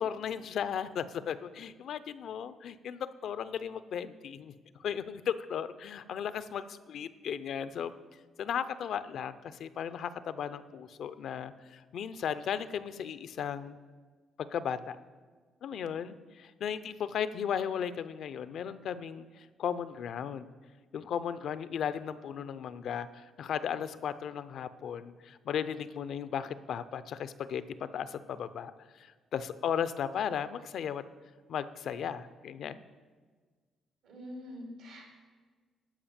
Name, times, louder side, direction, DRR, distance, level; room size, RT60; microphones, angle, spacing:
voice 1, 0.0-4.5 4.8-7.9 8.4-13.8 14.5-15.0 15.6-20.5 20.9-31.0 31.5-32.8, left 8 dB, 70° left, 13 dB, 0.5 m, -36 dB
voice 2, 34.0-35.0, left 1 dB, 85° right, -1 dB, 3.2 m, -44 dB
12.0 x 5.1 x 7.2 m, 1.4 s
cardioid pair, 90°, 0 cm